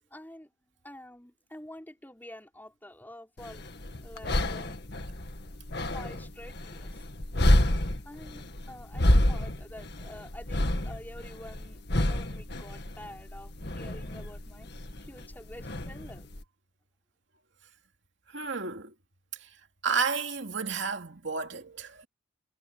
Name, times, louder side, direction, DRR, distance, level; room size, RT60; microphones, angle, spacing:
voice 1, 0.1-0.5 0.8-3.7 4.0-4.8 5.9-7.1 8.0-14.7 15.1-16.3, left 1 dB, 10° left, 4.7 m, -48 dB
sound 1, 3.4-16.4, left 1 dB, 55° left, 2.0 m, -29 dB
voice 2, 18.3-18.9 19.4-19.5 19.8-22.1, right 5 dB, 60° right, 2.8 m, -32 dB
head